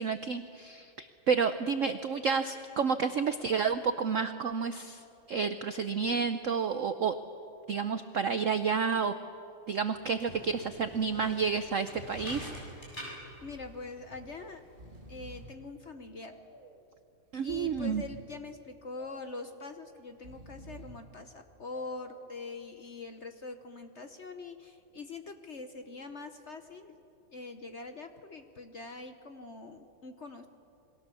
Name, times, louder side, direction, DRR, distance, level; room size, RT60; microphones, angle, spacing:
voice 1, 0.0-5.0 5.3-7.1 7.7-9.1 9.7-12.5 17.3-18.0, right 5 dB, 65° right, 10 dB, 0.7 m, -30 dB
sound 1, 9.9-15.4, equal, 20° left, 7.3 m, -47 dB
Breathing, 12.8-12.9 13.2-13.3 14.2-14.4 14.6-15.6 16.2-16.9 17.3-18.3 18.9-19.6 20.1-21.1 21.7-22.3, right 1 dB, 30° right, 1.7 m, -51 dB
voice 2, 13.4-14.6 15.1-16.4 17.4-26.9 27.3-30.5, left 3 dB, 45° left, 7 dB, 1.0 m, -43 dB
28.0 x 22.0 x 7.0 m, 2.7 s
omnidirectional pair, 2.2 m